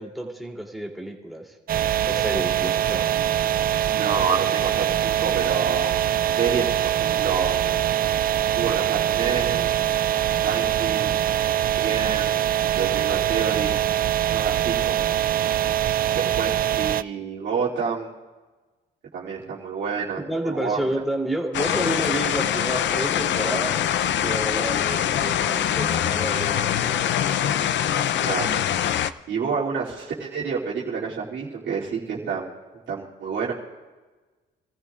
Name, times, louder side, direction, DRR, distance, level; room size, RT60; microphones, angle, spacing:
voice 1, 0.0-1.5 2.0-3.1 10.5-10.7 20.2-23.9 24.2-27.0, right 1 dB, ahead, 0 dB, 3.1 m, -30 dB
sound 1, 1.7-17.0, right 11 dB, 45° right, 0.4 m, -23 dB
voice 2, 3.9-5.9 6.3-7.6 8.5-9.7 10.4-11.1 11.8-12.4 12.7-13.8 14.3-15.0 16.2-18.1 19.1-20.2 20.5-20.9 28.2-28.6 29.3-32.5 32.9-33.5, right 5 dB, 70° right, -8 dB, 2.9 m, -28 dB
sound 2, 21.5-29.1, left 10 dB, 65° left, 0.6 m, -23 dB
27.5 x 14.5 x 2.5 m, 1.3 s
cardioid pair, 90°, 20 cm